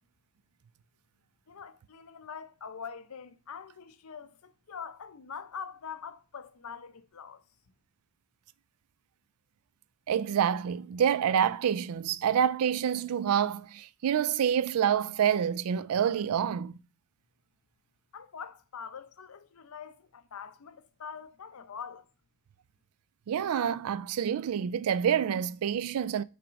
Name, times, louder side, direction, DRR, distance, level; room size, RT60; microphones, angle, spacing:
voice 1, 1.5-7.4 18.1-22.1, left 6 dB, 85° left, 0.6 m, -44 dB
voice 2, 10.1-16.8 23.3-26.2, right 8 dB, 85° right, 0.4 m, -27 dB
5.9 x 3.5 x 5.1 m
head